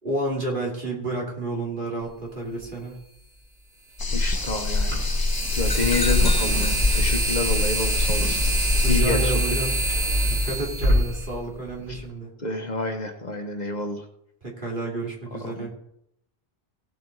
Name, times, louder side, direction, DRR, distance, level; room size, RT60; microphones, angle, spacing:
voice 1, 0.0-3.0 8.8-9.8 10.3-12.3 14.4-15.7, right 2 dB, 55° right, -2 dB, 3.1 m, -30 dB
sound 1, 2.6-2.7 4.1-12.0, right 1 dB, 80° right, 4.1 m, -25 dB
sound 2, 4.0-9.0, left 3 dB, 25° left, 0.7 m, -24 dB
voice 2, 4.1-8.4 8.9-9.3 11.9-12.0 12.4-14.1 15.5-15.7, left 3 dB, 45° left, 5 dB, 1.1 m, -29 dB
17.0 x 7.6 x 3.9 m, 0.77 s
omnidirectional pair, 1.1 m